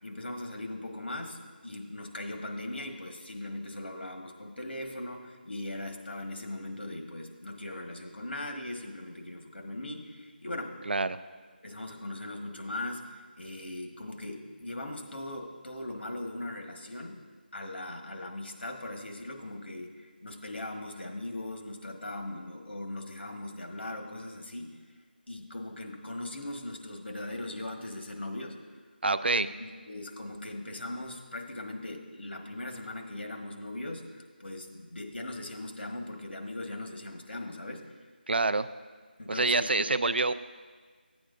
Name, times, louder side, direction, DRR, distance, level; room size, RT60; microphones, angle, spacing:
voice 1, 0.0-10.8 11.6-17.2 17.5-24.7 25.3-28.6 29.3-37.9 39.2-39.9, left 1 dB, 85° left, 3 dB, 1.4 m, -39 dB
voice 2, 10.9-11.2 29.0-29.5 38.3-38.7 39.3-40.3, right 3 dB, 75° right, 14 dB, 0.4 m, -26 dB
12.5 x 8.7 x 2.5 m, 1.5 s
figure-of-eight pair, 180°, 6 cm